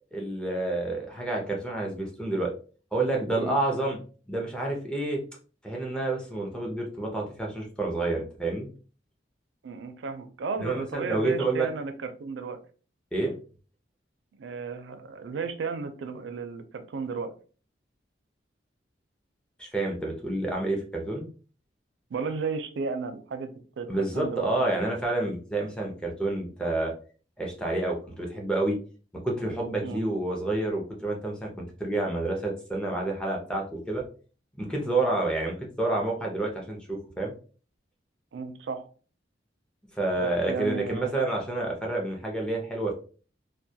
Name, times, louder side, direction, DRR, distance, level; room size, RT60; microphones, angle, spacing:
voice 1, 0.1-2.5 2.9-4.0 4.3-5.2 5.6-8.7 10.6-11.7 13.1-13.3 19.6-21.3 23.9-26.9 27.4-28.8 29.2-34.0 34.6-37.3 40.0-42.9, right 2 dB, 5° left, -1 dB, 0.5 m, -29 dB
voice 2, 9.6-12.6 14.4-17.3 22.1-23.9 24.1-24.8 29.8-30.0 38.3-38.9 40.2-41.1, right 5 dB, 80° right, 8 dB, 0.4 m, -34 dB
2.2 x 2.1 x 2.7 m, 0.39 s
head